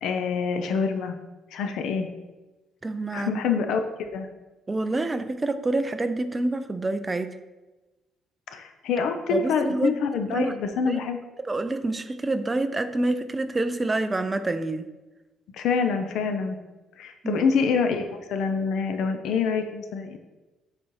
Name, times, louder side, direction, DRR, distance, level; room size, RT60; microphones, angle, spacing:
voice 1, 0.0-1.2 1.5-2.1 3.1-4.3 8.5-11.2 15.5-16.6 17.0-20.2, left 5 dB, 65° left, 6 dB, 0.6 m, -26 dB
voice 2, 2.8-3.4 4.7-7.4 9.3-9.9 10.3-10.5 10.9-11.0 11.4-14.9 17.2-17.4, right 2 dB, 15° right, 10 dB, 0.4 m, -27 dB
7.4 x 4.1 x 4.7 m, 1.1 s
cardioid pair, 175°, 0 cm